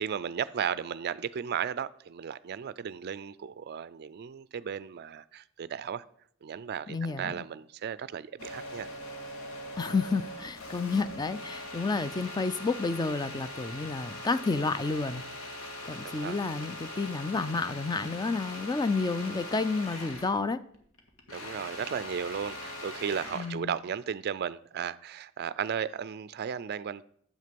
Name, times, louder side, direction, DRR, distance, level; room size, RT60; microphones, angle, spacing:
voice 1, 0.0-6.0 6.4-8.9 16.0-16.4 21.3-27.0, right 7 dB, 50° right, 0.4 m, -35 dB
voice 2, 6.9-7.3 9.8-15.2 15.9-20.6 23.3-23.7, left 3 dB, 20° left, 0.4 m, -30 dB
sound 1, 8.4-20.4 20.7-23.6, left 1 dB, 85° left, 1.7 m, -41 dB
9.5 x 7.4 x 5.2 m
head